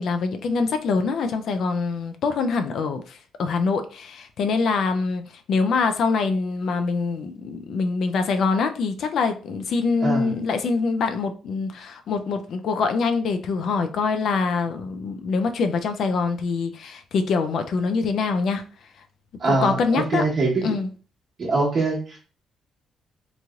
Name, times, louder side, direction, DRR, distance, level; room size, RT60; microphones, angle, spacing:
voice 1, 0.0-5.2 5.5-18.6 19.5-20.2 20.6-20.9, left 4 dB, 65° left, 0.4 m, -24 dB
voice 2, 10.0-10.3 19.4-20.7 21.4-22.2, right 3 dB, 50° right, 1.1 m, -23 dB
3.0 x 2.7 x 2.4 m
cardioid pair, 90°, 0 cm